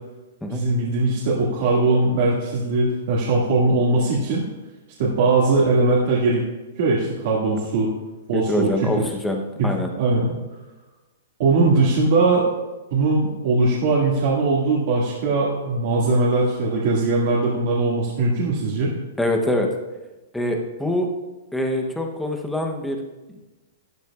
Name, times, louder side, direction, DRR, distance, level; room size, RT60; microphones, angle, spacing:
voice 1, 0.5-4.5 5.0-6.4 6.8-7.9 8.3-8.9 9.6-9.7 10.0-10.3 11.4-12.5 12.9-18.9, right 3 dB, 40° right, -6 dB, 1.9 m, -20 dB
voice 2, 8.3-9.9 19.2-19.7 20.3-21.1 21.5-23.0, left 1 dB, ahead, 2 dB, 0.8 m, -24 dB
12.5 x 12.5 x 2.4 m, 1.1 s
hypercardioid pair, 175°, 0 cm